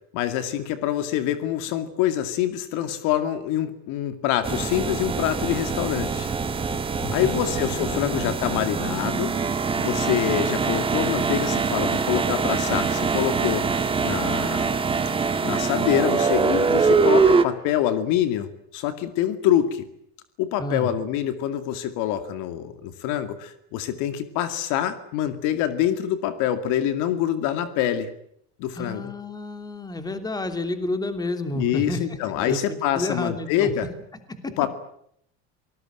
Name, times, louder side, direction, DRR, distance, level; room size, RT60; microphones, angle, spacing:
voice 1, 0.1-6.3 7.1-9.3 9.8-14.7 15.4-19.9 20.4-28.1 28.6-29.1 31.5-33.9 34.6-34.7, left 11 dB, 60° left, 10 dB, 2.4 m, -25 dB
sound 1, 4.4-17.4, right 4 dB, 15° right, 1.7 m, -23 dB
voice 2, 7.0-8.2 20.6-20.9 28.7-33.7 34.1-34.5, left 2 dB, 10° left, 8 dB, 3.0 m, -31 dB
27.0 x 19.5 x 9.1 m, 0.71 s
cardioid pair, 140°, 34 cm